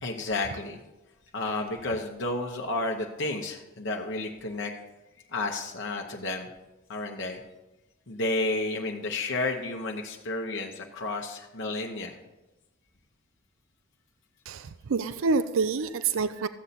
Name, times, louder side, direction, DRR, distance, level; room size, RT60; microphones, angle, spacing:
voice 1, 0.0-0.8 1.3-4.7 5.3-6.5 6.9-7.4 8.1-12.2, left 2 dB, 65° left, 1 dB, 1.0 m, -31 dB
voice 2, 14.5-16.5, right 4 dB, 70° right, 12 dB, 0.5 m, -27 dB
14.0 x 8.1 x 4.2 m, 1.0 s
head